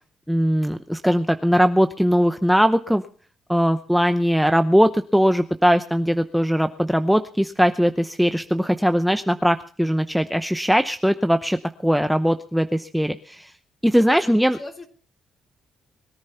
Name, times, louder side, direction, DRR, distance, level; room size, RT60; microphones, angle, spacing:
voice 1, 0.3-3.0 3.5-13.5 13.8-14.6, equal, ahead, 8 dB, 0.8 m, -20 dB
voice 2, 14.1-14.9, left 2 dB, 25° left, 4 dB, 3.6 m, -37 dB
21.5 x 10.5 x 5.7 m, 0.42 s
cardioid pair, 90°, 0 cm